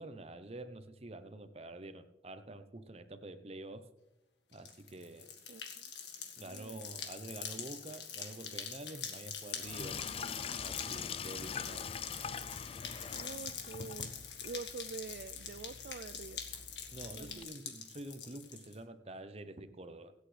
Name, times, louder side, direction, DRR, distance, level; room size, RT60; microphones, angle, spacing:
voice 1, 0.0-3.9 4.5-5.3 6.4-10.0 10.6-11.9 16.9-20.1, right 2 dB, 35° right, 10 dB, 0.8 m, -47 dB
sound 1, 4.5-18.7, left 7 dB, 85° left, 1.8 m, -45 dB
voice 2, 5.5-5.8 6.4-6.8 13.1-14.1 14.4-16.4 17.0-17.5, right 4 dB, 60° right, 12 dB, 0.3 m, -46 dB
Sink (filling or washing), 9.6-17.4, left 6 dB, 30° left, 0.4 m, -44 dB
24.5 x 8.3 x 3.3 m, 0.95 s
head